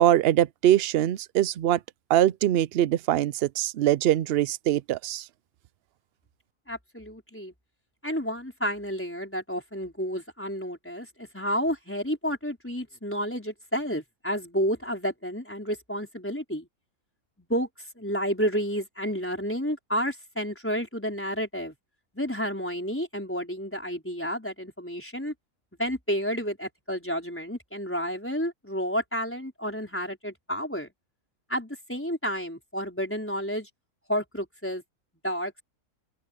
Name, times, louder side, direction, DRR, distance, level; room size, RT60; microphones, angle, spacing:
voice 1, 0.0-1.8 2.1-5.2, right 12 dB, 65° right, 0.6 m, -22 dB
voice 2, 6.7-7.5 8.0-16.7 17.4-17.7 18.0-21.7 22.1-25.3 25.8-30.9 31.5-33.7 34.1-34.8 35.2-35.6, equal, 10° left, 4.5 m, -30 dB
open air
omnidirectional pair, 1.5 m